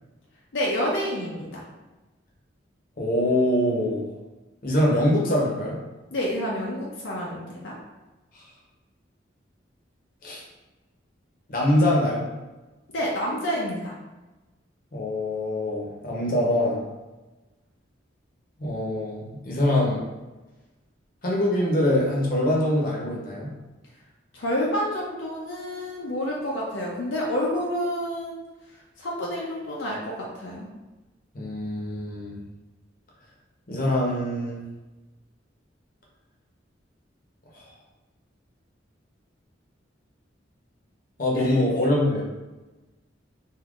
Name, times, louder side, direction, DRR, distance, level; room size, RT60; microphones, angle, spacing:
voice 1, 0.5-1.6 6.1-7.7 12.9-14.0 24.3-28.4 29.0-30.7 41.4-41.6, equal, 80° left, -3 dB, 0.6 m, -29 dB
voice 2, 3.0-4.0 4.6-5.8 8.3-8.4 10.2-10.4 11.5-12.3 14.9-16.8 18.6-20.0 21.2-23.5 31.3-32.4 33.7-34.6 37.5-37.6 41.2-42.2, left 1 dB, 50° left, -3 dB, 0.8 m, -24 dB
3.6 x 2.7 x 2.4 m, 1.1 s
head